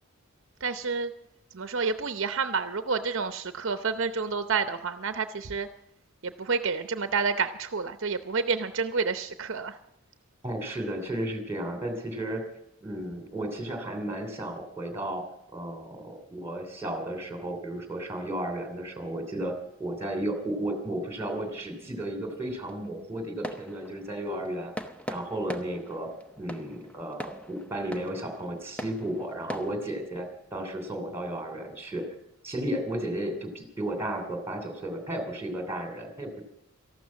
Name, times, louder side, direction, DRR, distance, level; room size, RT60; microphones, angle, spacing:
voice 1, 0.6-1.1 1.5-5.7 6.2-9.8, right 5 dB, 60° right, 9 dB, 0.7 m, -29 dB
voice 2, 10.4-12.4 12.8-15.3 15.5-19.5 19.8-24.7 25.1-26.1 26.4-32.0 32.4-36.4, right 1 dB, 10° right, 5 dB, 2.9 m, -33 dB
sound 1, 19.7-29.7, equal, 5° left, 0.7 m, -43 dB
14.0 x 12.0 x 7.4 m, 0.78 s
head